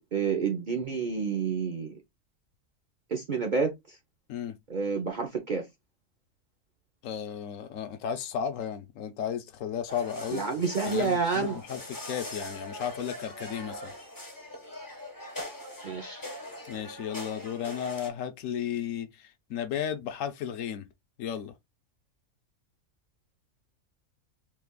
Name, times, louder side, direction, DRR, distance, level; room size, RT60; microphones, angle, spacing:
voice 1, 0.1-2.0 3.1-4.0 4.7-5.7 10.3-11.6 15.8-16.2, right 5 dB, 50° right, 0.6 m, -29 dB
voice 2, 7.0-10.4 10.8-11.8 12.0-13.9 16.7-20.8 21.2-21.5, left 8 dB, 65° left, 0.9 m, -34 dB
sound 1, 9.9-18.1, left 1 dB, 20° left, 0.5 m, -41 dB
3.3 x 2.3 x 3.6 m
omnidirectional pair, 1.6 m